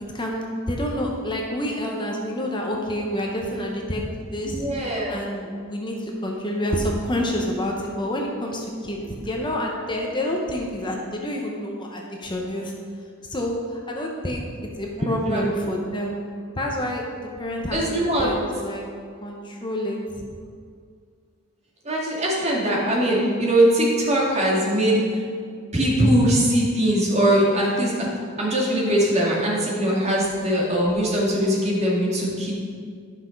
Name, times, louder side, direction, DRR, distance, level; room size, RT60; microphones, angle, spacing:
voice 1, 0.1-4.0 4.3-12.7 13.2-14.4 14.8-16.2 16.6-18.8 19.2-20.2, equal, 20° left, 0 dB, 0.9 m, -28 dB
voice 2, 4.5-5.1 15.0-15.8 17.7-18.3 21.8-25.2 25.7-28.1 28.4-32.5, right 1 dB, 30° right, -5 dB, 2.2 m, -21 dB
11.0 x 5.9 x 5.2 m, 2.2 s
head